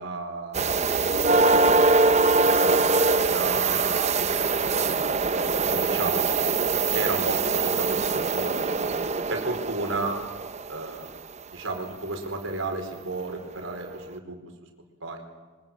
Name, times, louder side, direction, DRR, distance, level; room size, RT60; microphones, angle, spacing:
voice 1, 0.0-2.8 3.1-5.1 5.7-6.3 6.9-8.0 8.3-8.9 9.3-10.2 10.7-11.1 11.5-14.4 15.0-15.2, right 2 dB, 85° right, 4 dB, 4.5 m, -34 dB
sound 1, 0.5-11.2 13.2-13.3 13.8-14.0, right 3 dB, 35° right, 0.8 m, -23 dB
26.0 x 24.0 x 7.4 m, 1.3 s
head